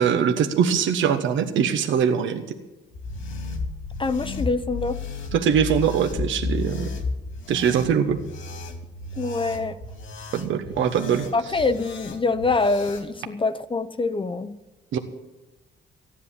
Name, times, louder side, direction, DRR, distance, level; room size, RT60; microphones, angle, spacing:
voice 1, 0.0-2.4 5.3-6.9 7.5-8.2 10.3-11.3 14.9-15.0, right 7 dB, 75° right, 6 dB, 1.2 m, -22 dB
sound 1, 2.9-13.1, left 3 dB, 80° left, 2.6 m, -33 dB
voice 2, 4.0-5.0 9.2-9.8 11.3-14.6, left 3 dB, 25° left, 11 dB, 0.7 m, -25 dB
15.0 x 10.5 x 7.3 m, 1.1 s
cardioid pair, 90°, 20 cm